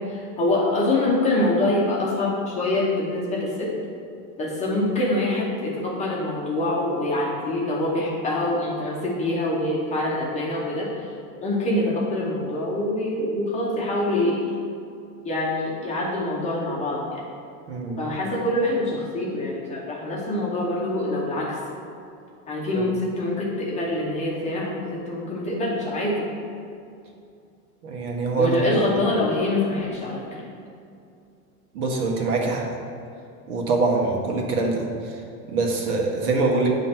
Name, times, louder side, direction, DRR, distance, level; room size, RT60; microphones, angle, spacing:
voice 1, 0.1-3.8 4.4-11.1 11.4-14.5 15.2-17.2 18.0-21.6 22.5-26.3 28.4-30.3, left 1 dB, 15° left, -4 dB, 0.8 m, -25 dB
voice 2, 17.7-18.0 22.7-22.8 27.8-28.8 31.7-32.6 33.5-34.9 35.5-36.7, right 3 dB, 75° right, 0 dB, 1.5 m, -23 dB
9.2 x 3.2 x 5.8 m, 2.5 s
supercardioid pair, 160°, 46 cm